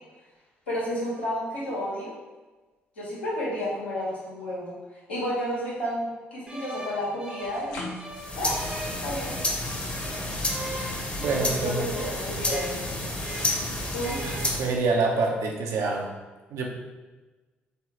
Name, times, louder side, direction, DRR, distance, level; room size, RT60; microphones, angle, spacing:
voice 1, 0.7-2.1 3.0-4.7 5.1-7.9 8.3-8.6 9.0-9.3 11.4-12.9 13.9-14.2, equal, 90° left, -9 dB, 1.2 m, -31 dB
sound 1, 6.5-9.6 10.0-13.7 13.9-14.5, right 1 dB, 20° right, 0.7 m, -41 dB
sound 2, 7.4-14.1, left 2 dB, 70° left, 0.8 m, -44 dB
sound 3, 8.1-14.8, left 1 dB, 20° left, 0.8 m, -31 dB
voice 2, 11.2-11.8 14.2-16.1 16.5-16.7, right 3 dB, 60° right, 0 dB, 0.7 m, -26 dB
3.6 x 3.2 x 2.9 m, 1.2 s
figure-of-eight pair, 45°, 6 cm